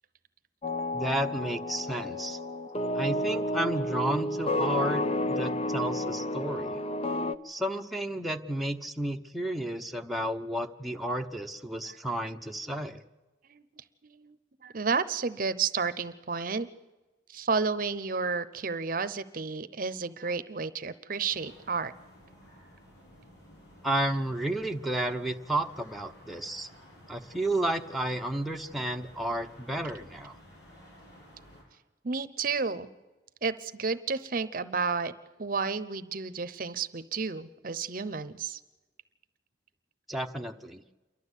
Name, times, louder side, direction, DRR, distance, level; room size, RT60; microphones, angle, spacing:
sound 1, 0.6-7.4, left 1 dB, 35° left, 0.6 m, -31 dB
voice 1, 0.9-2.4 2.9-6.8 7.4-13.0 23.8-26.7 27.1-30.4 40.1-40.8, right 1 dB, ahead, 2 dB, 0.9 m, -32 dB
voice 2, 14.0-14.4 14.6-16.7 17.3-21.9 32.0-32.9 33.4-35.1 35.4-38.6, right 5 dB, 50° right, 14 dB, 0.8 m, -31 dB
sound 2, 21.3-31.6, equal, 75° left, 8.0 m, -54 dB
28.5 x 12.0 x 8.2 m, 1.1 s
head